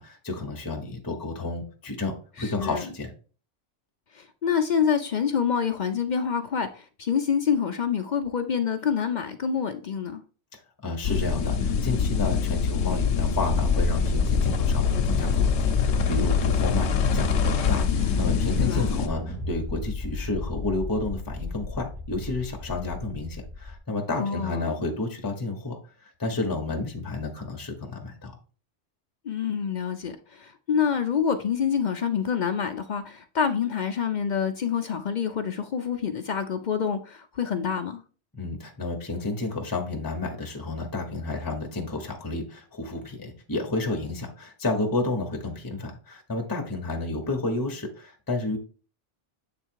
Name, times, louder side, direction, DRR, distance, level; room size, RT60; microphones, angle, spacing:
voice 1, 0.0-3.1 10.8-25.7 26.0-28.4 38.3-48.6, left 2 dB, 20° left, 1.0 m, -31 dB
voice 2, 2.4-2.9 4.1-10.2 18.6-18.9 24.2-24.7 29.2-38.0, left 7 dB, 55° left, 0.5 m, -27 dB
sound 1, 11.0-19.1, left 6 dB, 70° left, 1.0 m, -24 dB
sound 2, 13.2-23.8, left 2 dB, 80° right, 3.0 m, -32 dB
7.8 x 3.2 x 4.5 m
omnidirectional pair, 1.2 m